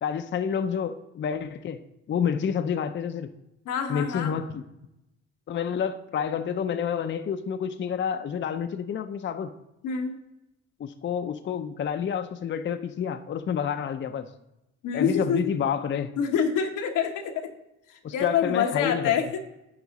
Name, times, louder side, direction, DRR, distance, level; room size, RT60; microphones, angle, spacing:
voice 1, 0.0-1.8 2.1-3.3 3.9-4.6 5.5-9.5 10.8-14.3 14.9-16.1 18.0-19.1, left 7 dB, 40° left, 9 dB, 0.5 m, -29 dB
voice 2, 3.6-4.3 9.8-10.2 14.8-15.4 16.2-17.5 17.9-19.4, left 7 dB, 90° left, 4 dB, 1.0 m, -26 dB
11.0 x 4.8 x 4.0 m, 0.91 s
cardioid pair, 90°, 30 cm